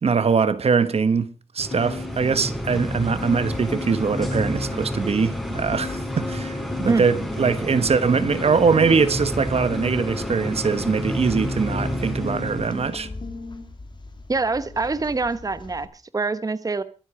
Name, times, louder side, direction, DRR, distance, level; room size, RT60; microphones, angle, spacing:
voice 1, 0.0-13.1, right 5 dB, 65° right, 1.2 m, -22 dB
sound 1, 1.6-12.9, equal, ahead, 4.6 m, -30 dB
sound 2, 1.7-9.4 9.7-13.7, left 5 dB, 60° left, 2.3 m, -37 dB
sound 3, 2.9-15.9, left 2 dB, 45° left, 2.8 m, -42 dB
voice 2, 14.3-16.8, right 3 dB, 35° right, 1.0 m, -25 dB
23.0 x 8.2 x 4.8 m
wide cardioid pair, 90°, 11 cm